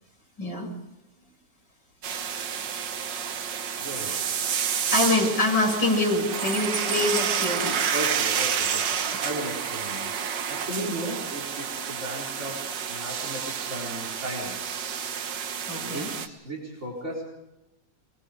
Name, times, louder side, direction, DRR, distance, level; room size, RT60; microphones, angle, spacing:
voice 1, 0.4-0.7 4.0-4.2 4.9-7.8 10.8-11.0 15.7-16.1, left 2 dB, 70° left, -1 dB, 7.4 m, -25 dB
sound 1, 2.0-16.3, right 7 dB, 70° right, 1.8 m, -29 dB
voice 2, 3.8-4.1 7.9-10.1 10.5-14.6 15.8-17.2, right 1 dB, 35° right, 0 dB, 4.8 m, -36 dB
24.0 x 22.0 x 5.1 m, 0.95 s
omnidirectional pair, 2.0 m